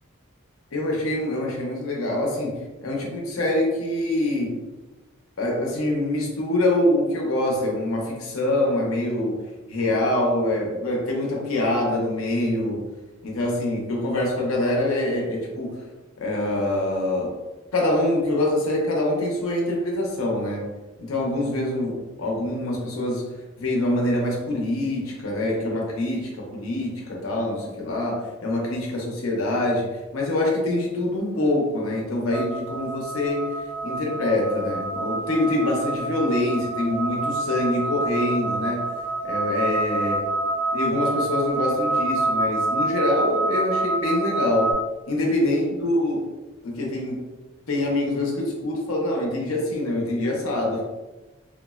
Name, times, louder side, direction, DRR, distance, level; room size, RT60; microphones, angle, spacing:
voice 1, 0.7-4.6 5.4-9.3 9.7-12.8 13.2-15.8 16.2-17.3 17.7-20.6 21.0-23.2 23.6-29.9 30.1-33.4 33.8-38.9 39.2-40.2 40.7-44.8 45.1-46.2 46.6-47.3 47.7-50.8, left 1 dB, 90° left, -1 dB, 0.6 m, -25 dB
sound 1, 32.3-44.7, right 2 dB, 10° left, 0.4 m, -27 dB
3.4 x 2.0 x 2.3 m, 1.1 s
head